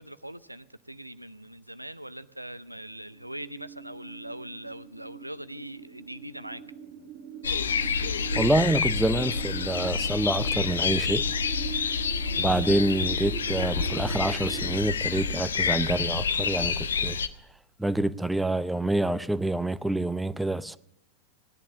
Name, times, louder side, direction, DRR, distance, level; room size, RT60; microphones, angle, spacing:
voice 1, 0.0-6.6 12.4-12.7, right 1 dB, 90° right, 0.6 m, -41 dB
sound 1, 3.1-14.8, right 9 dB, 45° right, 1.6 m, -42 dB
sound 2, 7.4-17.3, left 5 dB, 70° left, 0.8 m, -28 dB
voice 2, 8.3-11.2 12.4-17.2 17.8-20.8, right 1 dB, 5° right, 0.5 m, -27 dB
17.5 x 11.0 x 6.9 m
figure-of-eight pair, 90°, 0 cm